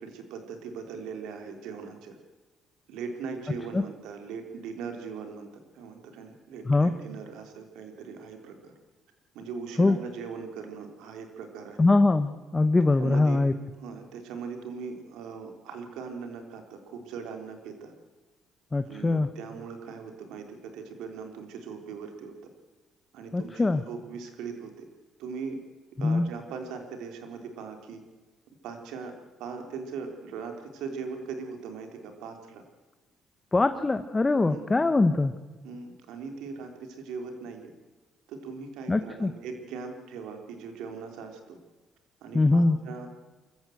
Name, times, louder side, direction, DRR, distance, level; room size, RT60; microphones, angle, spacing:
voice 1, 0.0-2.2 2.9-5.5 5.7-8.7 9.3-11.9 13.0-13.4 13.8-17.9 18.9-22.3 23.1-24.9 25.2-25.6 26.0-28.0 28.6-29.1 29.4-32.6 34.5-34.7 35.6-37.7 38.3-41.6 42.2-43.1, right 5 dB, 85° right, 5 dB, 3.6 m, -40 dB
voice 2, 11.8-13.5 18.7-19.3 23.3-23.8 26.0-26.3 33.5-35.3 38.9-39.3 42.3-42.8, left 2 dB, 20° left, 9 dB, 1.0 m, -22 dB
24.0 x 14.5 x 7.9 m, 1.2 s
cardioid pair, 105°, 0 cm